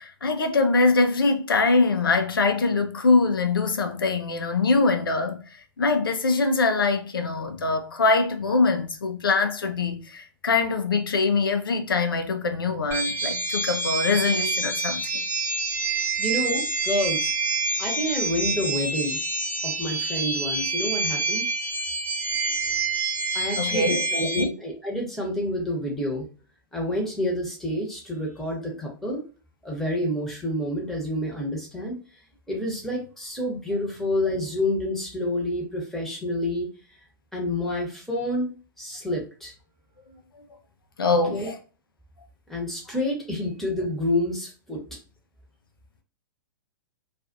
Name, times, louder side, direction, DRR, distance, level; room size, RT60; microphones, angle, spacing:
voice 1, 0.0-15.1 23.6-24.5 41.0-41.5, left 3 dB, 80° left, 0.5 m, -23 dB
sound 1, 12.9-24.4, right 3 dB, 20° right, 0.7 m, -27 dB
voice 2, 16.2-17.3 17.8-19.2 19.6-21.5 23.3-26.3 26.7-29.2 29.6-32.0 32.5-36.7 37.3-39.5 41.3-41.5 42.5-44.8, left 1 dB, ahead, 1.0 m, -28 dB
2.4 x 2.4 x 2.5 m
figure-of-eight pair, 110°, 12 cm